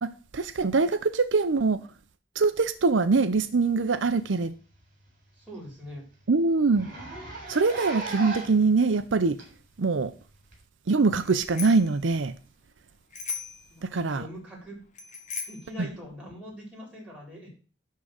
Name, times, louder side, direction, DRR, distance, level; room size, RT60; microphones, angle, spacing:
voice 1, 0.0-1.8 2.4-4.6 6.3-6.9 7.5-9.4 9.8-10.1 10.9-12.3 13.9-14.3 15.8-15.9, right 4 dB, 80° right, 0.6 m, -23 dB
Zipper (clothing), 4.1-4.2 4.6-4.7 5.1-5.2 5.5-5.6 5.9-6.0 6.7-8.7 9.4-9.5 10.5-10.6, right 3 dB, 45° right, 3.8 m, -37 dB
voice 2, 5.4-6.0 13.7-14.8 15.5-17.5, equal, 5° right, 4.0 m, -42 dB
Bicycle bell, 11.2-11.9 13.1-13.7 15.0-15.7, left 5 dB, 40° left, 1.4 m, -37 dB
11.0 x 3.8 x 6.4 m
head